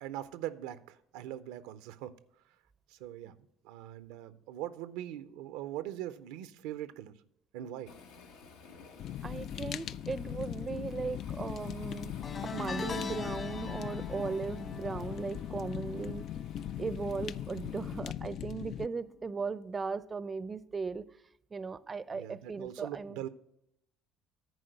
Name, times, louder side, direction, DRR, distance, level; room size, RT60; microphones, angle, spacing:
voice 1, 0.0-2.2 2.9-3.4 3.6-7.1 7.5-7.9 22.1-23.3, right 12 dB, 80° right, 0.5 m, -41 dB
Waves surf, 7.9-18.0, left 5 dB, 90° left, 1.3 m, -55 dB
Fire, 9.0-18.9, left 10 dB, 55° left, 0.3 m, -40 dB
voice 2, 9.2-12.1 12.4-16.3 16.8-21.0 21.5-23.2, right 4 dB, 25° right, 0.5 m, -37 dB
sound 1, 12.2-17.6 17.9-18.3 19.5-19.6, left 5 dB, 40° left, 1.2 m, -43 dB
10.5 x 4.3 x 7.8 m
supercardioid pair, 90°, 0 cm